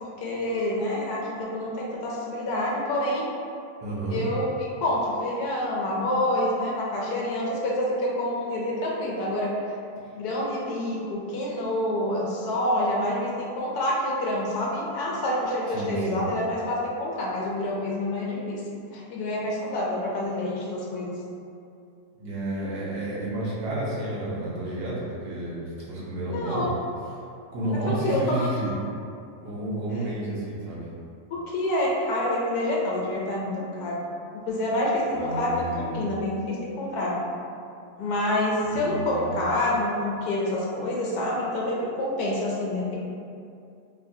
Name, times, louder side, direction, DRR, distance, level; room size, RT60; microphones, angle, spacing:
voice 1, 0.2-3.2 4.1-9.5 10.1-18.6 18.9-21.2 26.3-26.7 27.9-28.5 31.3-34.0 34.3-37.1 38.0-43.0, left 1 dB, 80° left, -4 dB, 1.1 m, -27 dB
voice 2, 3.8-4.3 15.7-16.2 22.2-25.6 25.9-26.7 27.5-28.7 29.4-30.9 35.1-36.0 38.6-39.3, right 1 dB, 75° right, -6 dB, 1.2 m, -31 dB
3.0 x 2.1 x 2.6 m, 2.4 s
omnidirectional pair, 1.7 m